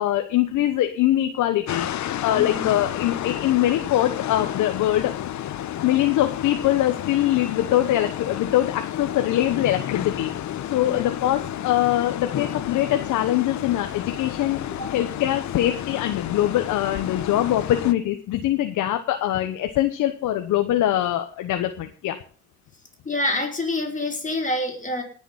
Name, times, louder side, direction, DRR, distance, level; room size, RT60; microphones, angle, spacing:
voice 1, 0.0-5.1 5.8-10.3 10.7-14.6 14.9-22.2, left 13 dB, 85° left, 7 dB, 1.2 m, -23 dB
sound 1, 1.7-17.9, left 11 dB, 70° left, 1.0 m, -31 dB
voice 2, 2.3-2.7 10.8-11.1 12.2-12.3 14.8-14.9 23.1-25.0, left 1 dB, 25° left, 1 dB, 5.4 m, -27 dB
18.5 x 7.1 x 5.5 m, 0.41 s
cardioid pair, 90°, 30 cm